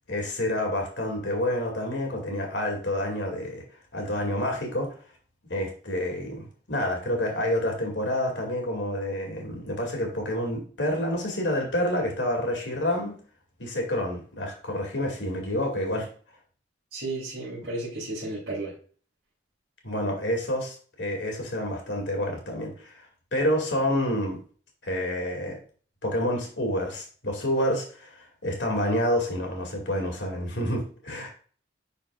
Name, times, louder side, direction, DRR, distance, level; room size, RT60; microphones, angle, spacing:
voice 1, 0.1-3.6 3.9-5.0 5.5-13.2 13.6-16.1 19.8-23.0 23.3-24.4 24.8-25.6 26.0-31.3, left 1 dB, 75° left, 2.2 m, -28 dB
voice 2, 16.9-18.8, right 2 dB, 70° right, 2.9 m, -33 dB
10.5 x 4.2 x 2.4 m
head